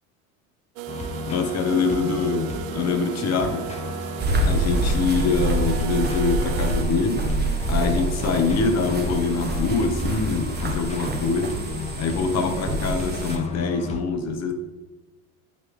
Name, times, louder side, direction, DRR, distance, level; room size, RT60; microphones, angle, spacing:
sound 1, 0.8-6.8, right 11 dB, 75° right, 0.6 m, -35 dB
sound 2, 0.9-14.0, left 3 dB, 15° left, 1.0 m, -34 dB
voice 1, 1.3-3.6 4.4-7.3 7.7-11.6 12.0-14.5, left 4 dB, 40° left, 6 dB, 1.3 m, -24 dB
sound 3, 4.2-13.4, right 2 dB, 25° right, 1.6 m, -26 dB
11.0 x 5.2 x 3.6 m, 1.2 s
hypercardioid pair, 85°, 41 cm